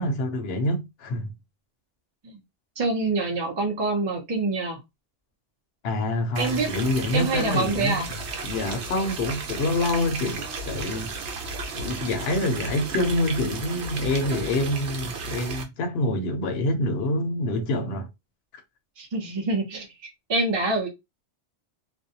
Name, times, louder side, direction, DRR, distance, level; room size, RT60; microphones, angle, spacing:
voice 1, 0.0-1.3 5.8-8.0 8.4-11.1 11.4-18.1, left 1 dB, 65° left, 0.8 m, -26 dB
voice 2, 2.8-4.8 6.4-6.7 7.1-8.1 19.0-20.9, right 3 dB, 30° right, 0.5 m, -26 dB
sound 1, 6.4-15.6, right 4 dB, 70° right, 0.9 m, -34 dB
2.5 x 2.1 x 2.7 m
omnidirectional pair, 1.2 m